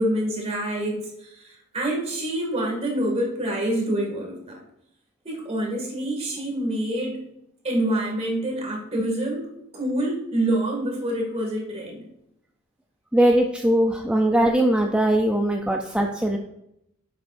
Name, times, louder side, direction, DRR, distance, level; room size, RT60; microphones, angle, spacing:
voice 1, 0.0-4.6 5.2-7.2 7.6-12.0, right 1 dB, 30° right, -1 dB, 2.2 m, -26 dB
voice 2, 13.1-16.4, right 1 dB, 5° right, 2 dB, 0.5 m, -20 dB
9.9 x 7.5 x 2.6 m, 0.80 s
head